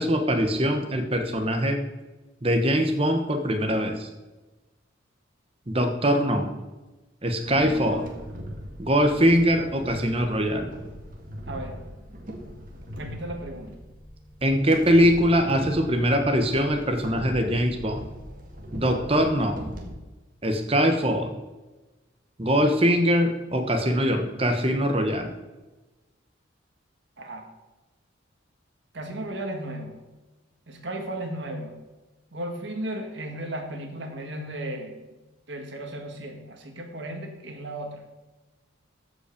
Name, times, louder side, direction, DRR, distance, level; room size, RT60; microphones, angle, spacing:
voice 1, 0.0-1.8 2.4-4.1 5.7-6.5 7.2-8.0 8.8-10.7 14.4-18.1 18.7-19.6 20.4-21.3 22.4-25.3, equal, 30° right, 5 dB, 1.2 m, -22 dB
sound 1, 7.4-19.9, equal, 45° right, 1.8 m, -40 dB
voice 2, 12.9-13.7 27.2-27.5 28.9-30.0 30.7-31.7 32.3-35.1 35.5-38.0, right 1 dB, 60° right, 4 dB, 1.6 m, -35 dB
14.0 x 5.5 x 5.2 m, 1.1 s
head